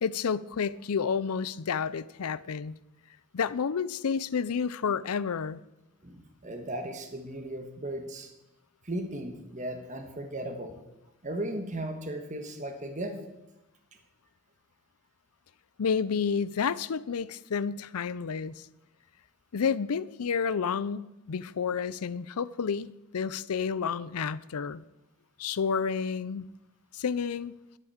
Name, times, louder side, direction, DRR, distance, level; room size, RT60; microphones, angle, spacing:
voice 1, 0.0-2.7 3.3-5.6 15.8-18.6 19.5-24.8 25.4-26.5 26.9-27.5, left 6 dB, 80° left, 0.5 m, -30 dB
voice 2, 6.0-8.3 8.8-10.8 11.2-13.2, right 1 dB, 35° right, 1.4 m, -36 dB
12.0 x 8.3 x 7.2 m
head